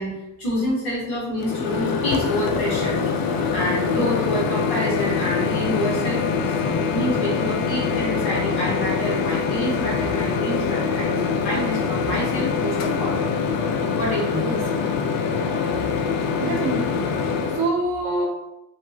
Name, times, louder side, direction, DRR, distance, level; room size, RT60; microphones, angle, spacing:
voice 1, 0.0-3.0 3.5-13.2 13.9-14.5, equal, 90° left, -6 dB, 1.2 m, -27 dB
Microwave oven, 1.4-17.7, left 5 dB, 65° left, 0.5 m, -24 dB
voice 2, 14.4-14.9 16.4-17.0 17.6-18.3, right 2 dB, 90° right, 0 dB, 0.7 m, -26 dB
2.6 x 2.2 x 2.9 m, 0.89 s
supercardioid pair, 45°, 37 cm